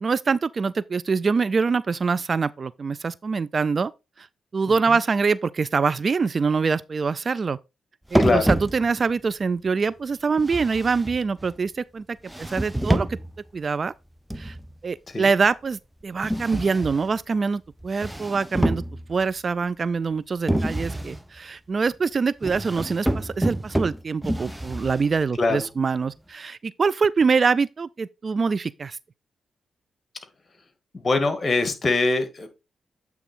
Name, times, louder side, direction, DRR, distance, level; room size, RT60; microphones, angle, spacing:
voice 1, 0.0-3.9 4.2-4.3 4.5-7.6 8.1-13.2 13.5-13.9 14.4-14.6 14.8-18.8 19.1-29.0, right 5 dB, 50° right, 0.3 m, -24 dB
voice 2, 4.7-5.0 8.2-8.5 15.1-15.3 25.4-25.7 30.9-32.5, left 3 dB, 40° left, 1.8 m, -23 dB
sound 1, 8.1-9.2 10.4-11.6 12.3-13.4 14.3-14.7 16.2-17.2 17.8-19.3 20.5-21.2 22.4-25.2, right 1 dB, 10° right, 0.7 m, -27 dB
8.3 x 3.5 x 4.3 m
hypercardioid pair, 40°, 0 cm